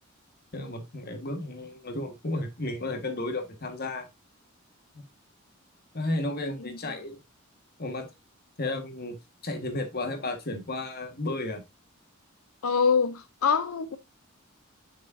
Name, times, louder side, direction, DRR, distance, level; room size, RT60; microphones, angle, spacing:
voice 1, 0.5-4.1 4.9-5.0 5.9-7.2 7.8-8.1 8.6-9.2 9.4-11.6, left 2 dB, 45° left, 1.5 m, -33 dB
voice 2, 12.6-14.0, left 6 dB, 85° left, 0.6 m, -24 dB
7.4 x 6.3 x 2.6 m
head